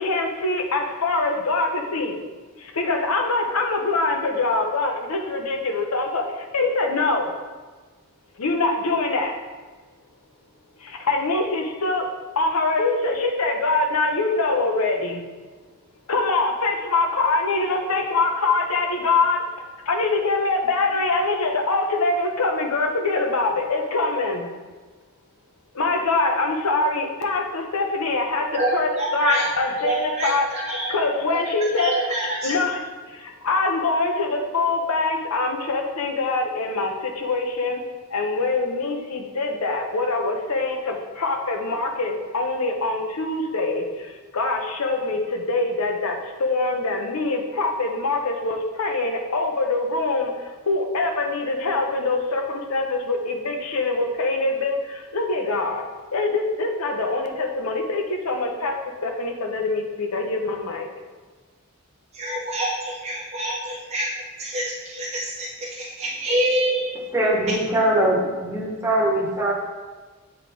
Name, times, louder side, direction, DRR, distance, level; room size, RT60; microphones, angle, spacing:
voice 1, 0.0-2.2 2.6-7.3 8.4-9.3 10.8-12.1 12.4-15.2 16.1-19.4 19.9-24.5 25.7-31.9 32.2-37.8 38.1-55.8 56.1-58.7 59.0-60.9, left 3 dB, 80° left, 3 dB, 0.8 m, -24 dB
voice 2, 28.5-29.5 29.8-30.9 31.3-32.5 62.1-66.9, right 1 dB, 30° right, -5 dB, 0.5 m, -27 dB
voice 3, 67.1-69.5, right 1 dB, 10° right, -4 dB, 0.9 m, -21 dB
7.9 x 3.8 x 3.4 m, 1.3 s
head